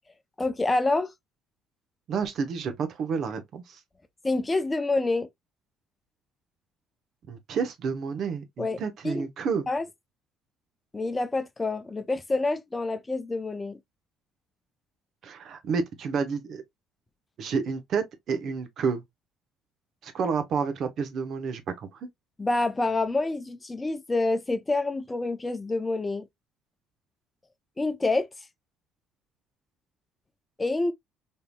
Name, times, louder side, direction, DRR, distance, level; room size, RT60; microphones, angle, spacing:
voice 1, 0.4-1.1 4.2-5.3 8.6-8.8 9.0-9.3 9.7-9.9 10.9-13.8 22.4-26.3 27.8-28.3 30.6-30.9, left 2 dB, 20° left, 0.5 m, -27 dB
voice 2, 2.1-3.8 7.3-9.7 15.2-16.6 17.4-19.0 20.0-21.9, right 5 dB, 60° right, 0.8 m, -30 dB
3.6 x 2.7 x 2.2 m
supercardioid pair, 75°, 0 cm